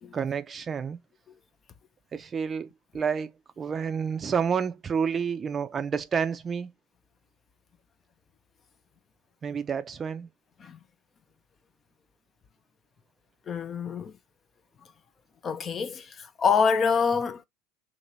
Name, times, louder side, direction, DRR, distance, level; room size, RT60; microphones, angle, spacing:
voice 1, 0.1-1.0 2.1-3.3 3.6-6.7 9.4-10.3, right 6 dB, 25° right, 0.5 m, -29 dB
voice 2, 13.5-14.1 15.4-17.4, left 6 dB, 30° left, 0.5 m, -26 dB
2.9 x 2.7 x 4.1 m
figure-of-eight pair, 75°, 0 cm